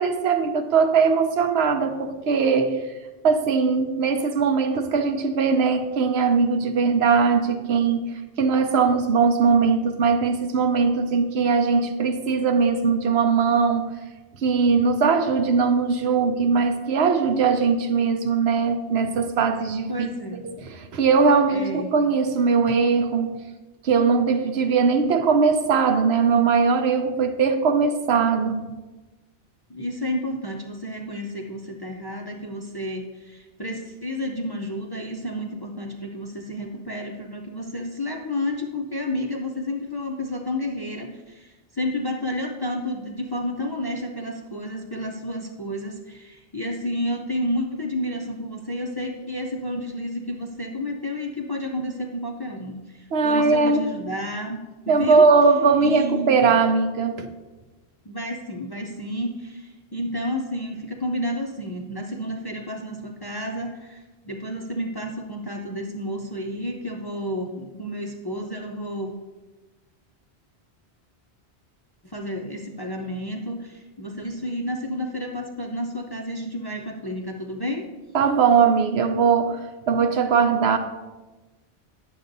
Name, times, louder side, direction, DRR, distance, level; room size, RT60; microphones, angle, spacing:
voice 1, 0.0-2.8 3.2-13.9 14.4-19.9 20.4-23.4 23.8-28.6 53.1-53.9 54.9-57.3 78.1-80.8, right 5 dB, 75° right, 7 dB, 0.9 m, -20 dB
voice 2, 19.9-20.4 21.5-22.0 29.7-55.2 55.8-56.6 58.0-69.1 72.0-77.9, left 1 dB, 30° left, 1 dB, 0.5 m, -31 dB
9.8 x 6.9 x 2.6 m, 1.2 s
omnidirectional pair, 1.1 m